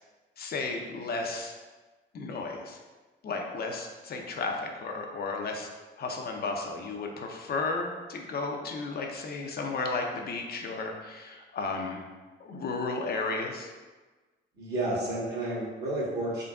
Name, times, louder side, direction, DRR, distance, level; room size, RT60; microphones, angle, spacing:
voice 1, 0.4-1.5 2.1-2.8 3.2-5.7 6.0-12.0 12.4-13.7, left 3 dB, 50° left, 2 dB, 0.6 m, -33 dB
voice 2, 14.6-16.4, right 1 dB, 55° right, -5 dB, 1.3 m, -31 dB
3.8 x 3.3 x 2.3 m, 1.3 s
cardioid pair, 90°, 20 cm